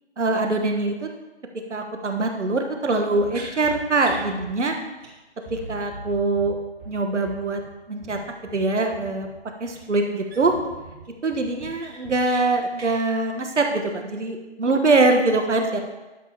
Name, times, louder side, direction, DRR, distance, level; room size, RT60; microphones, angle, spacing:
voice 1, 0.2-1.1 1.7-4.8 5.5-6.6 6.9-7.6 7.9-8.2 8.5-9.3 9.6-10.5 11.2-15.8, right 3 dB, 85° right, 4 dB, 1.2 m, -23 dB
sound 1, 3.2-5.1 5.4-9.9 10.4-12.3, right 1 dB, 10° left, 0.6 m, -43 dB
sound 2, 3.3-3.5 4.0-4.3 4.6-4.7 5.0-5.1 5.4-5.5 9.7-9.8 10.3-10.7 11.0-11.1 11.5-12.4 12.7-13.0, right 2 dB, 60° right, 3.0 m, -42 dB
11.5 x 6.9 x 2.8 m, 1.1 s
figure-of-eight pair, 165°, 35 cm